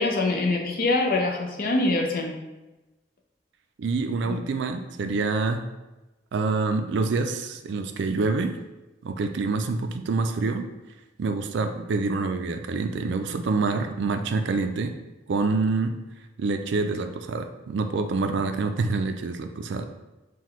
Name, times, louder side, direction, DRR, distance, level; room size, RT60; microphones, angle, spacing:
voice 1, 0.0-2.4 4.3-4.4, left 2 dB, 50° left, 2 dB, 0.6 m, -24 dB
voice 2, 3.8-5.6 6.3-8.5 9.0-10.7 11.2-14.9 15.3-15.9 16.4-19.8, right 3 dB, 65° right, 7 dB, 0.4 m, -26 dB
5.7 x 2.2 x 3.0 m, 1.1 s
head